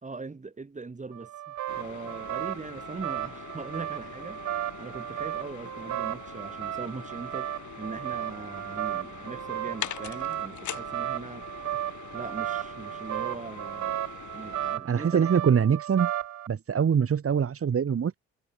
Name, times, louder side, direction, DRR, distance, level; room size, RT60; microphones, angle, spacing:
voice 1, 0.0-7.5 7.8-11.4 12.1-13.9 14.3-15.3, right 3 dB, 25° right, 3.8 m, -40 dB
sound 1, 1.1-16.5, right 12 dB, 70° right, 1.3 m, -35 dB
sound 2, 1.7-14.8, left 12 dB, 75° left, 5.0 m, -43 dB
voice 2, 14.8-16.1 16.5-18.2, right 7 dB, 50° right, 5.0 m, -24 dB
cardioid pair, 90°, 30 cm